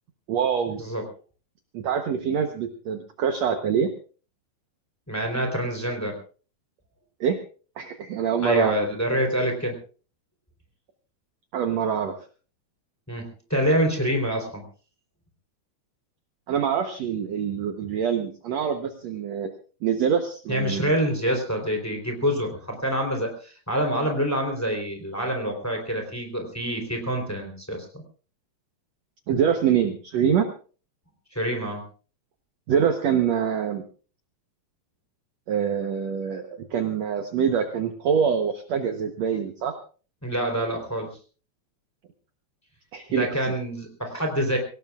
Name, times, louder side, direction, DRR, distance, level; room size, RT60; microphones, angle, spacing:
voice 1, 0.3-0.8 1.7-3.9 7.2-7.4 7.8-8.8 11.5-12.1 16.5-19.5 19.8-20.9 29.3-30.5 32.7-33.8 35.5-39.7 42.9-43.5, right 7 dB, 75° right, 5 dB, 1.6 m, -25 dB
voice 2, 5.1-6.1 8.4-9.7 13.1-14.6 20.5-28.0 31.3-31.8 40.2-41.2 43.1-44.6, equal, 5° left, 3 dB, 3.0 m, -26 dB
25.0 x 17.5 x 2.4 m, 0.39 s
omnidirectional pair, 4.6 m